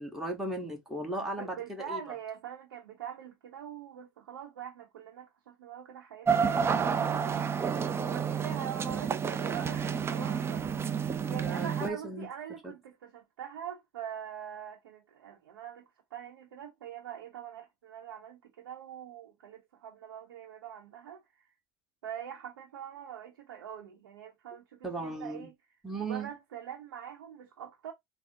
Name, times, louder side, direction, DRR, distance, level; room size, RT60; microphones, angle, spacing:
voice 1, 0.0-2.0 11.3-12.3 12.6-12.7 24.8-25.5 25.8-26.3, right 2 dB, ahead, 1.3 m, -36 dB
voice 2, 1.1-7.4 8.0-10.6 11.3-15.8 16.1-21.5 22.0-25.5 26.0-27.9, right 9 dB, 85° right, 0.7 m, -43 dB
sound 1, 6.3-11.9, right 6 dB, 20° right, 0.5 m, -30 dB
3.7 x 2.0 x 3.7 m
hypercardioid pair, 95°, 12 cm